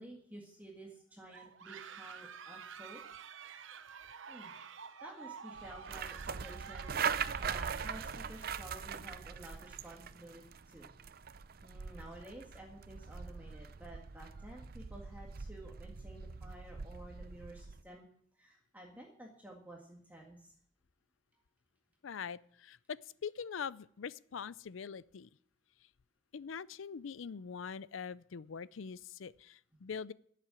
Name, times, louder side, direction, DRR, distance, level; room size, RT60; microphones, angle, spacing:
voice 1, 0.0-3.0 4.3-4.5 5.0-10.9 11.6-18.1 18.3-20.5, right 1 dB, 10° right, 1.8 m, -52 dB
sound 1, 1.3-9.1, right 7 dB, 75° right, 0.8 m, -50 dB
sound 2, 5.6-17.8, right 6 dB, 50° right, 0.5 m, -41 dB
voice 2, 22.0-25.3 26.3-30.1, left 6 dB, 80° left, 0.5 m, -43 dB
11.5 x 7.6 x 9.8 m
head